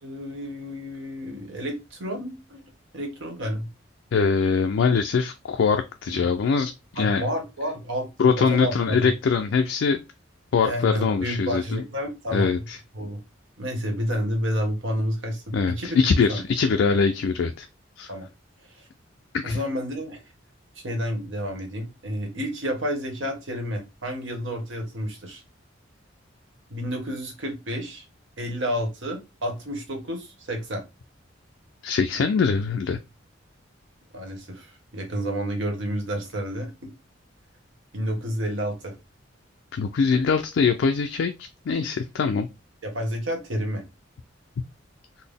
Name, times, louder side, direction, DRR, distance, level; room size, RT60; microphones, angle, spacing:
voice 1, 0.0-2.6 2.9-3.7 6.9-9.1 10.6-12.7 12.9-13.2 13.6-16.4 18.1-18.3 18.7-18.9 19.4-20.2 20.8-25.4 26.7-28.0 28.4-30.8 34.1-36.9 37.9-38.9 42.8-43.8, equal, 70° right, 3 dB, 1.2 m, -30 dB
voice 2, 4.1-7.2 8.2-10.0 10.5-11.8 12.3-12.8 15.5-17.7 18.0-18.1 19.4-19.6 31.8-33.0 39.7-42.5, left 5 dB, 70° left, 6 dB, 0.4 m, -23 dB
3.9 x 2.1 x 3.4 m, 0.25 s
head